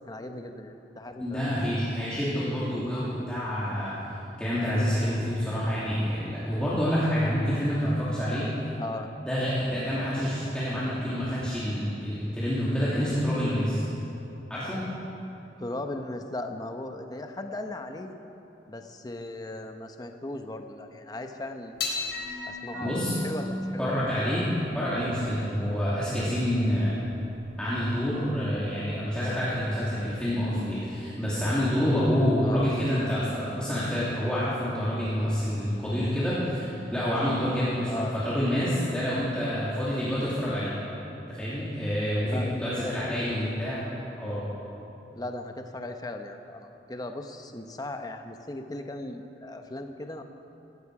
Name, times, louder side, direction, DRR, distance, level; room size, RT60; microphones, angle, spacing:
voice 1, 0.1-1.5 8.8-9.1 15.6-18.2 18.7-21.7 22.5-23.9 32.4-32.7 37.9-38.2 42.2-43.5 45.1-50.2, left 2 dB, 20° left, 5 dB, 0.9 m, -37 dB
voice 2, 1.2-4.1 4.4-8.5 9.2-13.9 14.5-14.8 22.8-23.2 23.8-24.5 24.7-27.0 27.6-40.7 41.3-43.9 44.2-44.4, equal, 5° left, -11 dB, 2.8 m, -27 dB
sound 1, 21.8-28.3, left 2 dB, 80° left, 3.0 m, -37 dB
18.0 x 15.5 x 4.9 m, 2.9 s
head